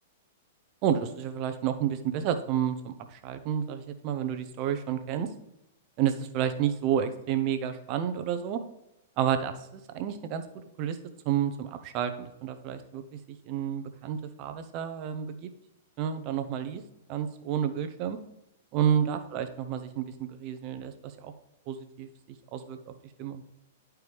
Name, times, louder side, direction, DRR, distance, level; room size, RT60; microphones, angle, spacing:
voice 1, 0.8-5.3 6.0-8.6 9.2-10.4 10.8-11.0 11.2-13.0 13.5-15.5 16.0-16.8 17.1-18.2 18.7-21.3 21.7-22.9 23.2-23.4, right 9 dB, 40° right, 9 dB, 0.7 m, -30 dB
10.5 x 4.6 x 3.4 m, 0.88 s
figure-of-eight pair, 105°, 0 cm